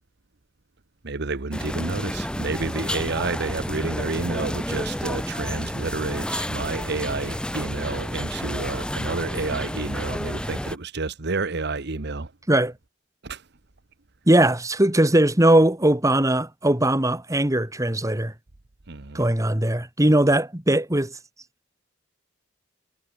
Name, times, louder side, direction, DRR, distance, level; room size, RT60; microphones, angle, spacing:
voice 1, 1.0-12.3 13.2-13.4 18.9-19.2, right 3 dB, 55° right, 1.2 m, -30 dB
sound 1, 1.5-10.8, equal, 5° left, 3.7 m, -30 dB
voice 2, 14.3-18.3 19.1-21.1, right 1 dB, 15° right, 1.9 m, -20 dB
head